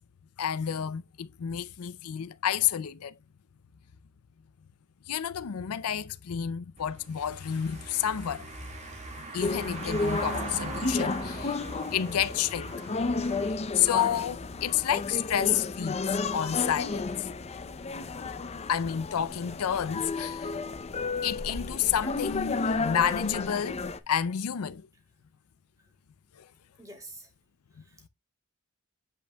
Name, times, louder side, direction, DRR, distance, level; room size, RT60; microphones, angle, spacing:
voice 1, 0.4-3.2 5.1-8.7 9.2-11.6 11.9-12.7 13.5-16.0 16.3-17.3 18.7-20.6 21.2-24.9 26.3-26.5, left 9 dB, 80° left, 0.5 m, -30 dB
Car passing by / Engine, 6.8-13.5, right 2 dB, 30° right, 1.8 m, -40 dB
sound 1, 9.4-24.0, left 3 dB, 30° left, 0.5 m, -32 dB
voice 2, 26.8-27.3 27.8-28.1, right 2 dB, 15° right, 2.0 m, -47 dB
8.7 x 5.1 x 2.2 m
head